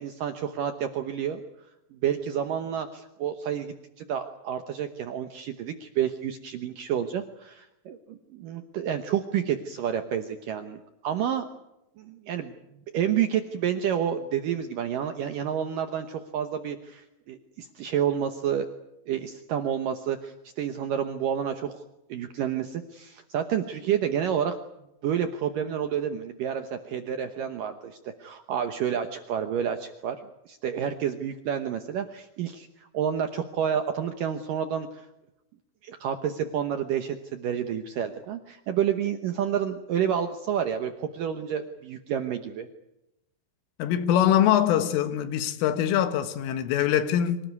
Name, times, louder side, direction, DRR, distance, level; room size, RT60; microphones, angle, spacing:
voice 1, 0.0-1.4 1.9-11.5 12.0-12.5 12.9-18.7 19.1-21.8 22.1-24.6 25.0-30.2 30.5-35.1 35.8-42.7, right 9 dB, 85° right, 1.9 m, -29 dB
voice 2, 43.8-47.4, left 10 dB, 85° left, 4.0 m, -23 dB
25.5 x 18.5 x 9.6 m
omnidirectional pair, 5.6 m